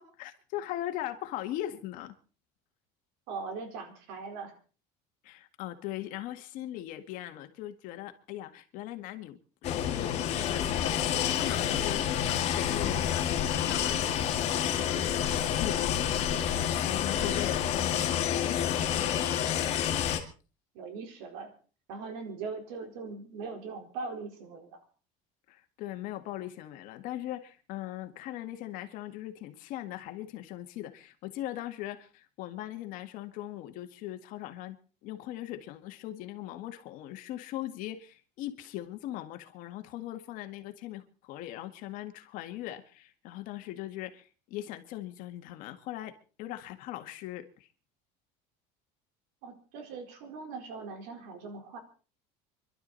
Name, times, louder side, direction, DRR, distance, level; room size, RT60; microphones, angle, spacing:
voice 1, 0.0-2.2 5.2-15.1 15.4-19.3 25.5-47.7, left 14 dB, 60° left, 1.9 m, -40 dB
voice 2, 3.3-4.5 20.7-21.5 21.9-24.8 49.4-51.8, right 4 dB, 90° right, 4.3 m, -40 dB
sound 1, 9.6-20.2, left 9 dB, 40° left, 2.3 m, -29 dB
26.5 x 12.0 x 4.1 m
cardioid pair, 165°, 16 cm